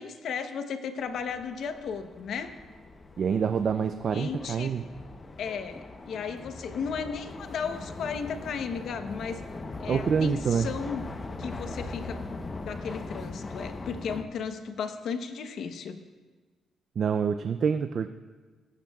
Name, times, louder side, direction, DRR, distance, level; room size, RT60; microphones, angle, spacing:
voice 1, 0.0-2.6 4.1-4.7 5.4-9.5 9.8-11.1 11.4-16.0, left 6 dB, 70° left, 8 dB, 0.9 m, -35 dB
sound 1, 1.0-14.2, left 3 dB, 30° left, 0.9 m, -40 dB
voice 2, 3.2-4.8 9.9-10.7 17.0-18.1, right 6 dB, 55° right, 9 dB, 0.4 m, -26 dB
18.5 x 14.5 x 2.4 m, 1.4 s
cardioid pair, 90°, 0 cm